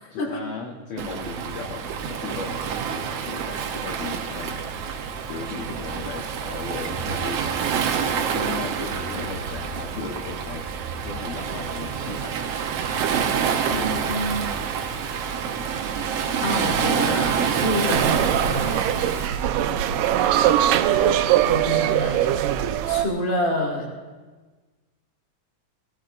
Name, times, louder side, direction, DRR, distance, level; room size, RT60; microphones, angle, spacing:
voice 1, 0.1-4.6 5.3-7.8 8.1-10.7 11.0-12.4 19.5-20.2, left 5 dB, 65° left, 1 dB, 2.1 m, -36 dB
Waves surf, 1.0-19.3, right 7 dB, 70° right, 1.5 m, -27 dB
Thunder, 4.9-16.6, right 1 dB, 35° right, 2.3 m, -43 dB
voice 2, 13.6-14.5 16.4-19.2 21.0-23.9, left 1 dB, 40° left, -1 dB, 2.8 m, -28 dB
sound 1, 17.9-23.1, right 11 dB, 90° right, 2.3 m, -21 dB
20.0 x 17.5 x 2.5 m, 1.3 s
omnidirectional pair, 3.8 m